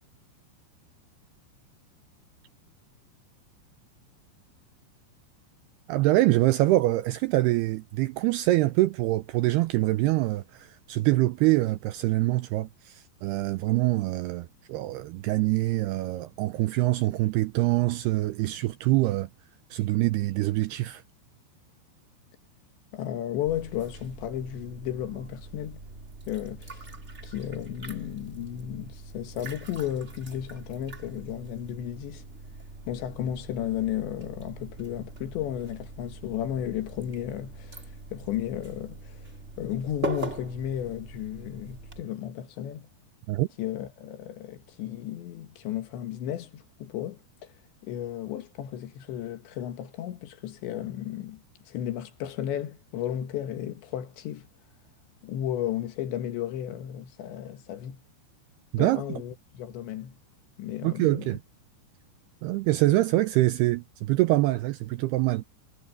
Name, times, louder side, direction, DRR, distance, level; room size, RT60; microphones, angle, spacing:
voice 1, 5.9-19.3 19.7-21.0 43.3-43.5 58.7-59.0 60.8-61.4 62.4-65.4, right 18 dB, 85° right, 2.3 m, -25 dB
voice 2, 22.9-25.8 26.3-26.9 27.2-32.2 32.9-37.8 38.1-39.3 39.6-42.9 43.6-47.2 47.8-54.5 55.2-58.0 58.8-60.2 60.6-61.4, left 11 dB, 75° left, 3.8 m, -34 dB
sound 1, 23.4-42.0, right 2 dB, 35° right, 1.1 m, -42 dB
omnidirectional pair, 5.2 m